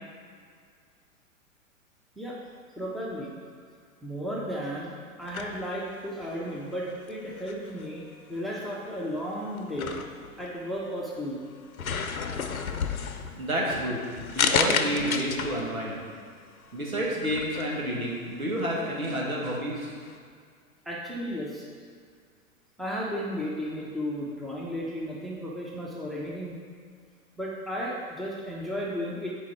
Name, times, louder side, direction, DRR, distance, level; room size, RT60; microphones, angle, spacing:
voice 1, 2.8-3.3 4.0-4.9 5.2-8.0 8.3-10.0 10.4-11.4 20.8-21.6 22.8-26.6 27.4-29.3, equal, ahead, -5 dB, 1.0 m, -34 dB
sound 1, 5.2-20.2, left 5 dB, 75° left, 0.7 m, -34 dB
voice 2, 13.3-16.0 16.7-19.9, equal, 80° right, -3 dB, 2.0 m, -30 dB
10.0 x 4.7 x 4.3 m, 2.1 s
figure-of-eight pair, 100°, 42 cm